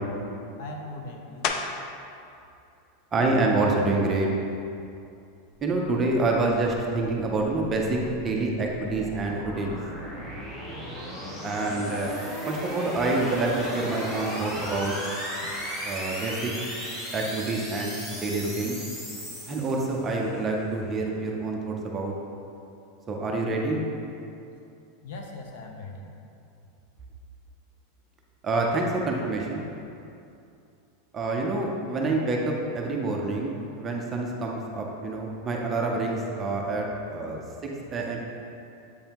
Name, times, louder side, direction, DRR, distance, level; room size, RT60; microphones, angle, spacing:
voice 1, 0.6-1.5 25.0-26.1, left 2 dB, 55° left, 2 dB, 0.7 m, -39 dB
sound 1, 1.4-2.0 2.6-7.0 7.5-12.7 13.0-18.6, left 5 dB, 35° left, 0.4 m, -41 dB
voice 2, 3.1-4.3 5.6-9.8 11.4-12.1 12.5-14.9 15.6-16.5 17.1-18.8 19.5-22.1 23.1-23.8 28.4-29.6 31.1-38.2, right 2 dB, 15° right, -1 dB, 0.5 m, -27 dB
sound 2, 7.2-20.2, equal, 15° left, 1.1 m, -36 dB
7.9 x 5.3 x 2.9 m, 2.6 s
supercardioid pair, 175°, 0 cm